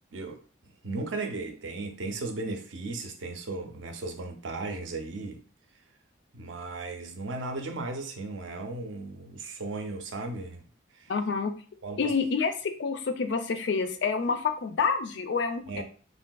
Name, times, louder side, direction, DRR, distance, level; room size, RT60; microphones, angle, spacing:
voice 1, 0.8-5.4 6.3-10.7 10.9-11.1 11.8-12.1 15.7-15.8, right 3 dB, 70° right, 0.5 m, -36 dB
voice 2, 11.1-11.5 12.0-15.8, left 5 dB, 65° left, 0.4 m, -28 dB
3.5 x 2.6 x 2.2 m
head